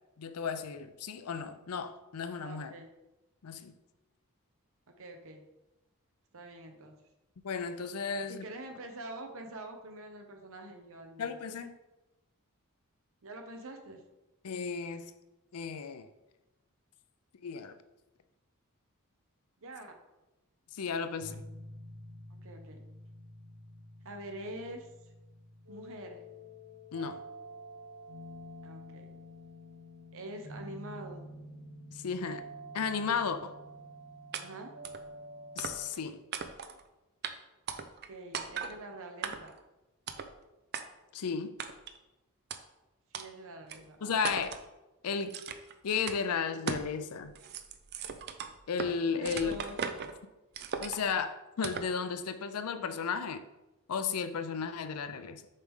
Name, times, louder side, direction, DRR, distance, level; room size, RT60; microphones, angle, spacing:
voice 1, 0.2-2.7 3.4-3.7 7.4-8.5 11.2-11.7 14.4-15.1 15.5-16.1 17.4-17.8 20.7-21.4 26.9-27.2 31.9-32.4 32.7-33.5 35.6-36.2 41.1-41.6 44.0-44.5 45.0-45.4 45.8-47.3 48.7-49.5 50.8-53.4 53.9-55.4, left 6 dB, 85° left, 11 dB, 0.5 m, -34 dB
voice 2, 2.4-2.9 4.9-5.5 6.3-7.0 8.1-11.4 13.2-14.0 19.6-19.9 22.4-22.8 24.0-24.9 25.7-26.2 28.6-29.1 30.1-31.3 34.4-34.7 38.1-39.5 43.1-44.2 49.1-50.0, right 1 dB, 65° right, 4 dB, 1.0 m, -45 dB
sound 1, 21.2-35.9, right 1 dB, 90° right, 1.1 m, -48 dB
sound 2, 34.3-34.4 34.8-35.0 35.6-36.0 36.3-36.8 37.2-37.3 37.7-38.1 38.3-38.7 39.2-39.6 40.1-40.3 40.7-40.8 41.6-42.0 42.5-42.6 43.1-43.3 43.7-43.8 44.2-44.7 45.3-45.7 46.1-46.2 46.7-46.9 47.2-48.9 49.2-50.1 50.5-51.2 51.6-51.9, right 6 dB, 50° right, 0.5 m, -38 dB
6.6 x 4.7 x 3.7 m, 1.0 s
head